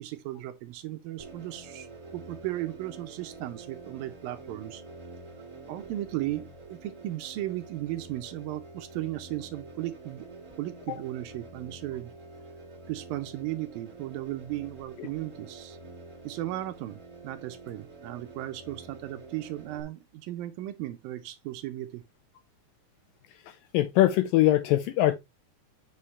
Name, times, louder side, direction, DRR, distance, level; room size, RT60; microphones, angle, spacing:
voice 1, 0.0-4.8 5.7-10.3 10.6-12.1 12.9-15.8 16.2-22.0, right 15 dB, 75° right, 2.3 m, -36 dB
sound 1, 1.2-19.8, right 3 dB, 15° right, 1.0 m, -47 dB
voice 2, 23.5-25.2, left 14 dB, 80° left, 2.1 m, -23 dB
8.4 x 5.7 x 3.1 m
omnidirectional pair, 4.5 m